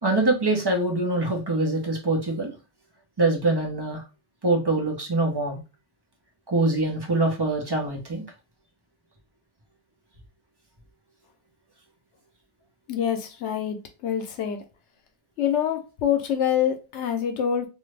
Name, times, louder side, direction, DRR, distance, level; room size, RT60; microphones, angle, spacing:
voice 1, 0.0-2.5 3.2-4.0 4.4-5.6 6.5-8.2, right 2 dB, 25° right, 0.8 m, -24 dB
voice 2, 12.9-14.6 15.4-17.7, left 9 dB, 80° left, 0.9 m, -26 dB
2.6 x 2.4 x 3.2 m
omnidirectional pair, 1.2 m